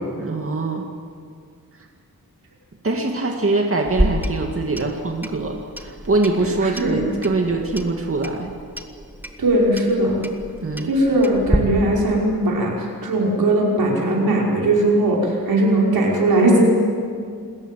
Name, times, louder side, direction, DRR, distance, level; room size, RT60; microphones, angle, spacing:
voice 1, 0.2-0.9 2.8-8.5 10.6-10.9, right 3 dB, 40° right, 1 dB, 2.2 m, -23 dB
Clock, 3.8-11.6, equal, 5° right, 1.8 m, -29 dB
voice 2, 9.4-10.2 10.8-16.7, right 1 dB, 85° right, -3 dB, 5.6 m, -19 dB
27.0 x 14.5 x 9.3 m, 2.2 s
wide cardioid pair, 95°, 35 cm